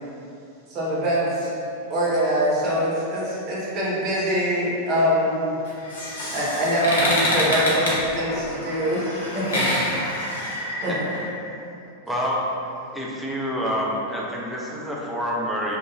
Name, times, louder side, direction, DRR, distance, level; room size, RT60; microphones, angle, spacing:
voice 1, 0.7-1.5 1.9-5.5 6.3-9.0 9.3-9.8 10.8-10.9, equal, 35° right, -8 dB, 0.9 m, -23 dB
sound 1, 5.6-11.2, left 1 dB, 65° left, 0.6 m, -26 dB
voice 2, 8.0-10.8, left 1 dB, 35° left, -10 dB, 0.8 m, -51 dB
voice 3, 12.1-12.4 12.9-15.8, equal, ahead, -5 dB, 0.4 m, -27 dB
2.5 x 2.2 x 3.0 m, 2.7 s
figure-of-eight pair, 90°, 0 cm